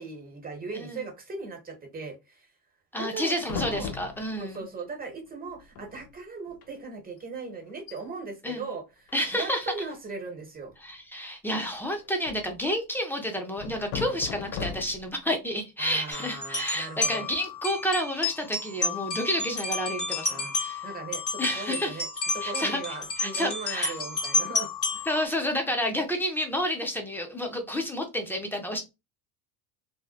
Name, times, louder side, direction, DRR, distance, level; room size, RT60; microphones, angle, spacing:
voice 1, 0.0-2.4 3.0-3.9 4.4-10.7 15.8-17.3 20.3-20.5 20.8-22.1 22.3-25.1, right 4 dB, 20° right, 1.0 m, -38 dB
voice 2, 2.9-4.6 8.4-8.6 9.1-9.7 10.8-20.9 21.4-22.0 22.4-22.8 23.2-24.0 25.1-28.8, equal, 5° left, 0.4 m, -30 dB
sound 1, 3.4-4.6 5.5-5.6 5.7-6.1 6.5-6.7 7.2-7.3 7.7-8.0 9.1-9.6 11.6-12.6 13.6-15.2, left 7 dB, 80° left, 0.7 m, -38 dB
sound 2, 16.1-25.3, left 3 dB, 30° left, 1.3 m, -31 dB
2.7 x 2.1 x 2.3 m
hypercardioid pair, 90°, 48 cm